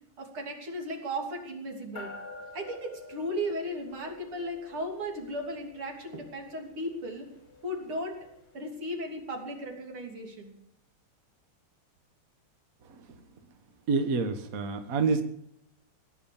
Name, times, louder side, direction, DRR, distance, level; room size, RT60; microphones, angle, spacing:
voice 1, 0.2-2.1 2.5-7.3 7.6-8.3 8.5-10.5, equal, 85° right, 2 dB, 4.0 m, -36 dB
sound 1, 2.0-9.6, left 3 dB, 35° left, 5.5 m, -49 dB
voice 2, 13.9-15.2, right 4 dB, 45° right, 8 dB, 1.6 m, -27 dB
18.0 x 10.5 x 7.2 m, 0.76 s
omnidirectional pair, 2.3 m